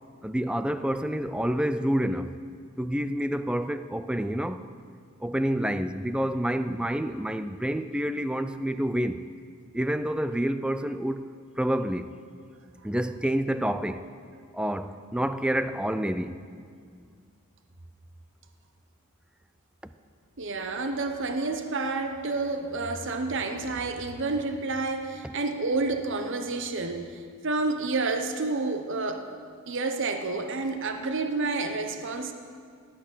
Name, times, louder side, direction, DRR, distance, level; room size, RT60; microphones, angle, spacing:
voice 1, 0.2-2.4 2.8-4.6 5.2-9.2 9.7-11.3 11.6-12.1 12.8-14.1 14.5-16.4, equal, 5° right, 11 dB, 0.3 m, -28 dB
voice 2, 20.4-27.0 27.4-29.3 29.7-32.3, right 3 dB, 55° right, 6 dB, 0.9 m, -29 dB
17.0 x 8.8 x 6.2 m, 2.2 s
head